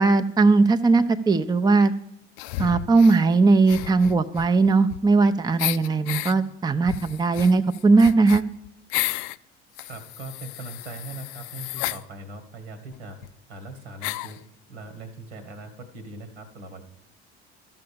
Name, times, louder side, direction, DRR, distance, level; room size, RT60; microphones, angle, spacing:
voice 1, 0.0-1.9 2.6-8.4, right 3 dB, 10° right, 8 dB, 0.6 m, -19 dB
sound 1, 2.4-3.2 3.6-5.2 5.6-6.3 6.8-9.4 9.8-12.0 12.9-13.0 13.2-13.3 14.0-14.4, left 17 dB, 60° left, 0.5 m, -32 dB
voice 2, 9.8-13.2 13.5-14.4 14.7-16.8, right 2 dB, 85° right, 9 dB, 2.1 m, -40 dB
12.5 x 6.9 x 6.9 m, 0.79 s
hypercardioid pair, 65°, 33 cm